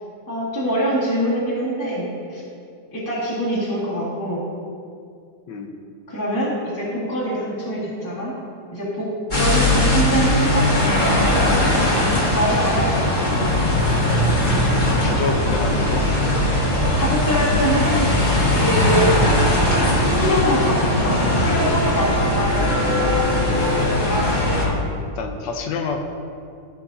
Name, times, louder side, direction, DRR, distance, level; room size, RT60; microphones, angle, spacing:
voice 1, 0.3-2.4 2.9-4.4 6.1-8.3 8.7-10.7 12.3-13.9 16.9-18.1 18.5-19.1 20.2-23.2, equal, 10° left, -10 dB, 1.8 m, -24 dB
sound 1, 9.3-24.7, left 1 dB, 30° left, 1.4 m, -19 dB
voice 2, 14.8-16.0 19.0-19.1 20.2-20.4 24.6-26.0, left 4 dB, 80° left, 4 dB, 1.5 m, -28 dB
Wind instrument woodwind instrument, 18.8-24.0, right 1 dB, 65° left, 1.6 m, -32 dB
14.0 x 5.7 x 2.7 m, 2.3 s
omnidirectional pair, 1.9 m